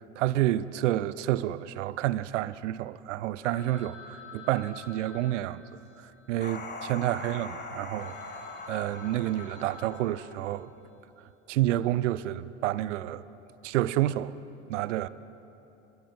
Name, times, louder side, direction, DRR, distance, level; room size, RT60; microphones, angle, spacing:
voice 1, 0.2-5.6 6.3-8.1 8.7-10.7 11.5-13.2 13.6-14.3 14.7-15.1, right 14 dB, 70° right, 0.9 m, -29 dB
Telephone, 3.4-7.2 7.7-7.8 8.0-10.9, left 5 dB, 50° left, 5.2 m, -49 dB
sound 1, 6.4-10.7, left 3 dB, 25° left, 3.8 m, -42 dB
29.5 x 21.0 x 7.6 m
figure-of-eight pair, 70°, 38 cm